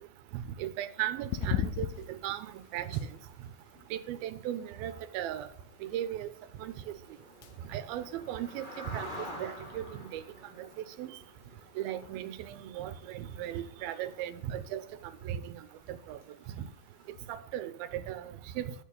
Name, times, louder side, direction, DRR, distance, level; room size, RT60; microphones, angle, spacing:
voice 1, 0.3-2.5 2.7-3.0 3.9-5.5 5.8-6.3 6.6-6.7 7.7-9.1 9.4-10.2 10.6-10.7 11.0-11.1 11.8-14.8 15.2-15.6 15.9-16.2 17.3-18.7, right 11 dB, 90° right, 2.7 m, -37 dB
sound 1, 1.2-17.3, left 11 dB, 80° left, 2.4 m, -44 dB
sound 2, 2.1-2.2 2.4-2.6 3.0-3.3 3.7-3.8 4.1-4.2 4.4-4.6 4.8-15.2, equal, 20° left, 1.5 m, -49 dB
11.5 x 6.4 x 5.4 m
omnidirectional pair, 4.2 m